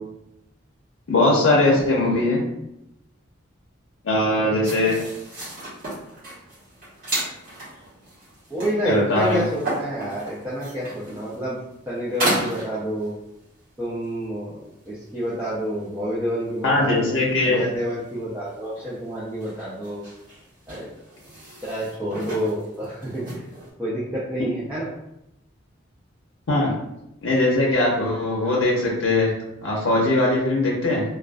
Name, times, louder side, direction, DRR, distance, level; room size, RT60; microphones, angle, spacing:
voice 1, 1.1-2.4 4.0-5.0 8.8-9.5 16.6-17.6 26.5-26.7 27.2-29.3 29.6-31.0, left 2 dB, 80° left, -3 dB, 0.5 m, -20 dB
voice 2, 4.1-5.1 8.5-11.6 11.9-13.1 13.8-17.1 17.4-20.0 20.7-21.0 21.6-23.4 23.8-24.9, equal, 10° right, -10 dB, 0.5 m, -29 dB
sound 1, 4.6-13.4 14.0-14.1 14.7-15.4 15.7-16.0 16.4-17.0 17.4-23.7, right 1 dB, 45° right, 1.0 m, -34 dB
2.4 x 2.2 x 2.3 m, 0.82 s
head